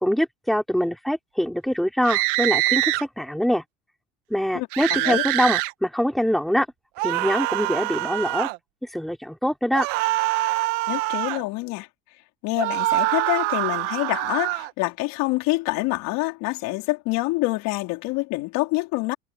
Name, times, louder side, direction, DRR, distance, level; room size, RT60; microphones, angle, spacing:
voice 1, 0.0-3.6 4.3-6.7 7.0-8.5 8.9-9.9, equal, ahead, 3.6 m, -24 dB
sound 1, 2.0-3.0 4.7-5.7 7.0-8.6 9.7-11.4 12.6-14.7, right 21 dB, 90° right, 1.5 m, -24 dB
voice 2, 4.5-5.2 10.9-11.9 12.4-19.1, left 22 dB, 70° left, 4.5 m, -26 dB
cardioid pair, 150°, 35 cm